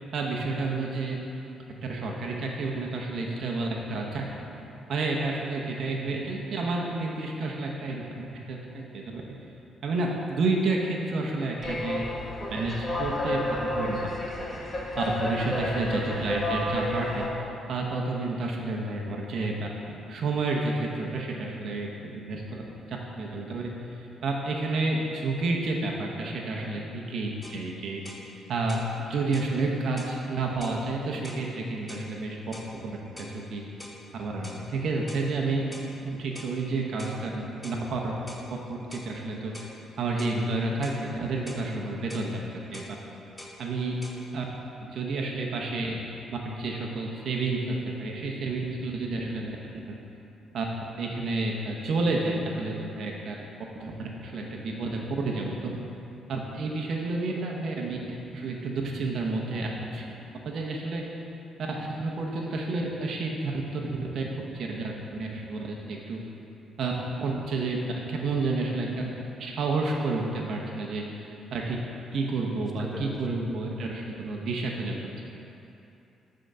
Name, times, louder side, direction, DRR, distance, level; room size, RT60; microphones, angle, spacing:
voice 1, 0.1-1.2 1.8-4.4 4.9-8.0 8.3-9.2 9.8-12.1 12.5-14.0 15.0-22.6 22.9-32.5 32.8-32.9 33.2-33.6 34.1-35.7 36.0-38.1 38.7-39.6 40.0-42.8 43.6-44.0 44.3-44.5 44.9-46.0 46.3-50.0 50.5-53.3 53.7-55.7 56.3-61.1 61.6-66.2 66.8-67.8 68.1-68.9 69.4-71.8 72.1-75.2, right 3 dB, 65° right, -1 dB, 0.8 m, -30 dB
sound 1, 11.6-17.3, left 1 dB, 30° left, 1.3 m, -31 dB
sound 2, 27.4-27.6 28.0-28.3 28.7-28.9 29.3-29.5 30.0-30.2 30.6-30.8 31.2-31.5 31.9-32.1 32.5-32.7 33.2-33.4 33.8-34.0 34.4-34.6 35.1-35.3 35.7-35.9 36.3-36.6 37.0-37.2 37.6-37.8 38.3-38.5 38.9-39.1 39.5-39.8 40.2-40.4 40.8-41.0 41.5-41.7 42.1-42.3 42.7-42.9 43.4-43.6 44.0-44.2, left 1 dB, 15° left, 0.8 m, -44 dB
voice 2, 72.8-73.5, equal, 15° right, 1 dB, 0.9 m, -39 dB
7.6 x 3.8 x 6.6 m, 2.8 s
cardioid pair, 90°, 0 cm